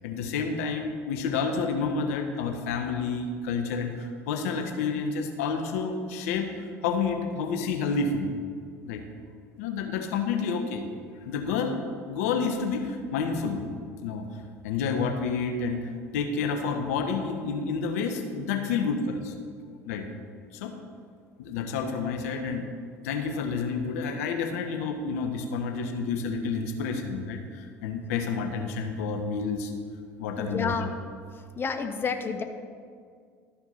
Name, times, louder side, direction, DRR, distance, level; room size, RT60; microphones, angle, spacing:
voice 1, 0.0-8.3 8.9-9.0 9.6-10.9 11.2-11.8 12.1-13.6 14.0-14.3 14.6-19.3 19.9-20.1 20.5-20.8 21.4-22.7 23.0-29.7 30.2-30.7, left 5 dB, 75° left, 5 dB, 0.9 m, -29 dB
voice 2, 30.4-30.9 31.3-32.4, left 5 dB, 30° left, 7 dB, 0.8 m, -30 dB
13.0 x 4.5 x 5.4 m, 2.1 s
hypercardioid pair, 70°, 8 cm